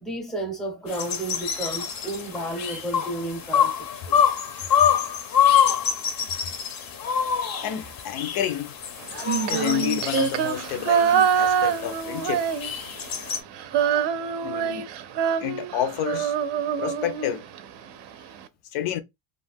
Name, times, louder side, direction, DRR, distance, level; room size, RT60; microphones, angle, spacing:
voice 1, 0.0-4.3, right 1 dB, ahead, 0.6 m, -32 dB
sound 1, 0.9-13.4, left 8 dB, 45° left, 0.6 m, -26 dB
voice 2, 7.6-8.7 9.5-12.4 14.4-14.9 15.4-16.3 16.8-17.4 18.7-19.0, left 10 dB, 85° left, 0.7 m, -29 dB
Female singing, 9.1-13.0 13.3-17.6, right 8 dB, 60° right, 0.5 m, -25 dB
2.4 x 2.1 x 3.4 m
cardioid pair, 155°, 48 cm